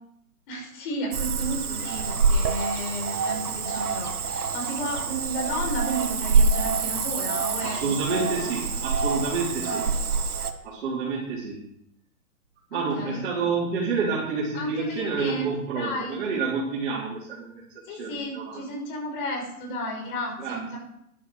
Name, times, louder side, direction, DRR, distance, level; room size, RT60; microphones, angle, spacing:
voice 1, 0.5-8.5 9.6-9.9 12.7-13.3 14.5-16.2 17.8-20.8, right 1 dB, 35° left, 1 dB, 5.4 m, -33 dB
Cricket / Frog, 1.1-10.5, right 4 dB, 80° right, 1.7 m, -26 dB
voice 2, 7.6-9.8 10.6-11.6 12.7-17.6 17.9-18.7 20.4-20.8, right 4 dB, 45° right, -6 dB, 4.5 m, -29 dB
11.5 x 11.0 x 6.5 m, 0.74 s
hypercardioid pair, 150°, 44 cm